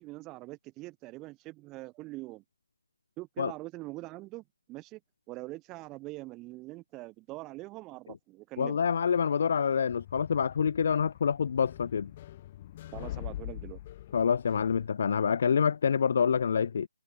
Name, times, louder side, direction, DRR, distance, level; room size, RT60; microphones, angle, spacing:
voice 1, 0.0-2.4 3.2-5.0 5.3-8.8 12.9-13.8, right 20 dB, 15° right, 3.3 m, -43 dB
voice 2, 8.6-12.1 14.1-16.9, left 7 dB, 40° left, 0.8 m, -27 dB
sound 1, 9.9-14.9, left 13 dB, 25° left, 3.4 m, -44 dB
figure-of-eight pair, 160°, 0 cm